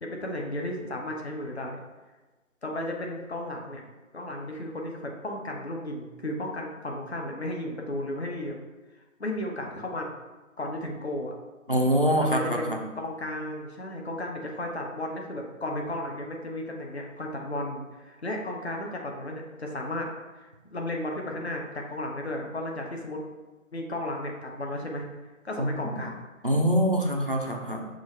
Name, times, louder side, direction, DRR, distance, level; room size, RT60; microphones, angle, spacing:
voice 1, 0.0-1.8 2.6-3.8 4.1-8.6 9.2-10.1 10.6-11.3 12.2-20.1 20.4-23.2 23.7-25.1 25.4-26.1, left 1 dB, 50° left, 1 dB, 0.8 m, -34 dB
voice 2, 11.7-12.8 25.6-25.9 26.4-27.9, equal, 40° right, 1 dB, 0.4 m, -25 dB
6.1 x 2.5 x 3.1 m, 1.2 s
figure-of-eight pair, 160°, 42 cm